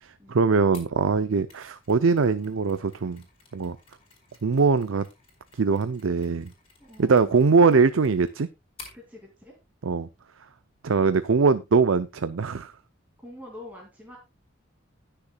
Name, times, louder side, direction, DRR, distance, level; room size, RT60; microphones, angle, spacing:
voice 1, 0.0-3.2 3.5-3.8 4.4-5.1 5.5-6.5 7.0-8.5 9.8-10.1 10.8-12.7, right 4 dB, 85° right, 0.5 m, -22 dB
Mechanisms, 0.7-9.0, left 4 dB, 30° left, 4.7 m, -53 dB
voice 2, 6.8-7.4 8.9-9.6 13.2-14.2, left 1 dB, 10° right, 2.6 m, -45 dB
19.5 x 6.8 x 2.3 m
head